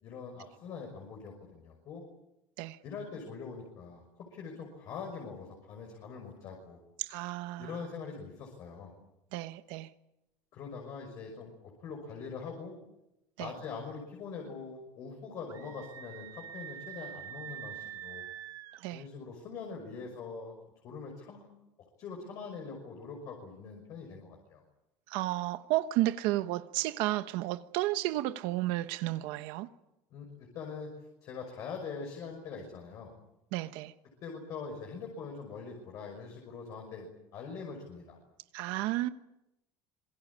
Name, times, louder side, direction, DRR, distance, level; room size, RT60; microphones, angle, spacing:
voice 1, 0.0-2.0 2.8-6.8 7.6-8.9 10.5-12.7 13.4-18.3 18.9-20.5 20.8-21.5 22.0-24.6 30.1-30.9 31.2-33.1 34.2-37.1 37.3-38.2, left 5 dB, 45° left, 5.9 m, -43 dB
voice 2, 7.0-7.7 9.3-9.9 13.4-13.5 18.8-19.0 25.1-29.7 33.5-33.9 38.5-39.1, right 16 dB, 70° right, 1.1 m, -32 dB
Screaming, 15.5-18.8, right 10 dB, 40° right, 1.5 m, -45 dB
26.5 x 22.0 x 8.6 m
cardioid pair, 170°, 8 cm